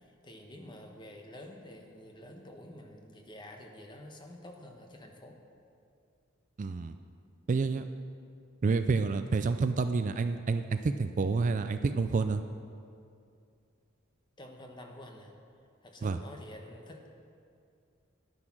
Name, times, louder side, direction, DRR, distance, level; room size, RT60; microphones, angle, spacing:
voice 1, 0.0-5.4 14.4-15.3 15.8-17.0, left 1 dB, 20° left, 3 dB, 1.1 m, -49 dB
voice 2, 6.6-6.9 7.5-7.8 8.6-12.4 16.0-16.2, right 4 dB, 35° right, 9 dB, 0.3 m, -29 dB
10.5 x 9.8 x 6.0 m, 2.4 s
head